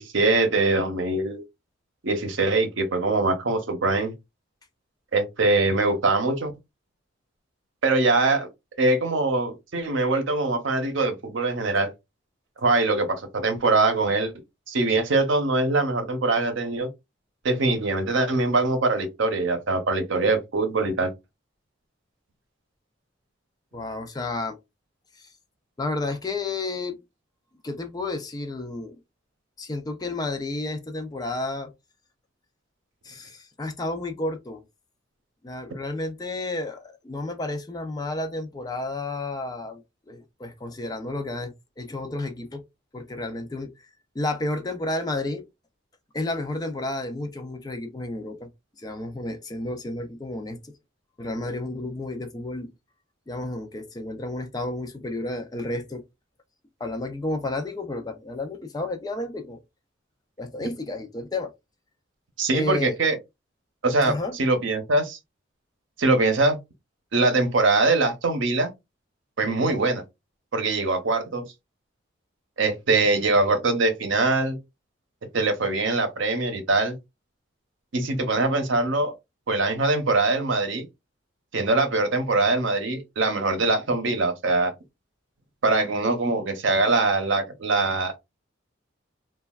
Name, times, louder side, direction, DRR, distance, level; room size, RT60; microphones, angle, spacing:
voice 1, 0.0-1.4 2.0-4.1 5.1-6.5 7.8-8.5 8.8-11.9 12.6-14.3 14.7-16.9 17.4-21.1 62.4-63.2 63.8-65.2 66.0-66.6 67.1-68.7 69.4-70.0 70.5-71.4 72.6-74.6 75.3-77.0 77.9-79.1 79.5-80.9 81.5-84.7 85.6-88.2, right 2 dB, 75° right, 0.7 m, -23 dB
voice 2, 23.7-24.6 25.1-25.3 25.8-27.0 27.6-29.0 29.6-31.7 33.0-34.6 35.4-42.6 42.9-43.9 44.1-45.4 46.1-48.5 48.8-50.7 51.2-52.7 53.3-56.0 56.8-59.6 60.4-61.5 62.5-63.0 64.1-64.3, left 2 dB, 20° left, 0.4 m, -31 dB
3.2 x 2.3 x 2.3 m
head